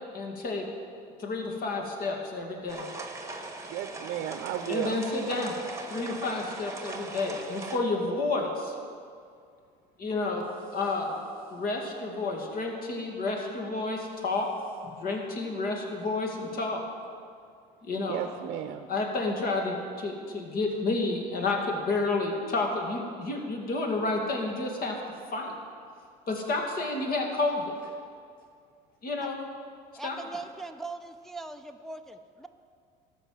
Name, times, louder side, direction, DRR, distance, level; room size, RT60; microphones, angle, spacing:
voice 1, 0.1-0.6 1.2-2.9 4.7-5.6 5.9-8.7 10.0-11.2 11.5-14.5 14.8-16.8 17.9-18.2 18.9-25.0 25.3-25.5 26.3-27.9 29.0-29.4 30.0-30.2, left 3 dB, 45° left, 1 dB, 2.3 m, -30 dB
sound 1, 2.7-7.8, right 3 dB, 15° right, 1.5 m, -40 dB
voice 2, 3.7-5.0 18.1-18.9, right 10 dB, 60° right, 8 dB, 0.7 m, -33 dB
voice 3, 29.9-32.5, right 3 dB, ahead, 5 dB, 0.6 m, -40 dB
13.5 x 5.7 x 7.6 m, 2.3 s
supercardioid pair, 85°, 20 cm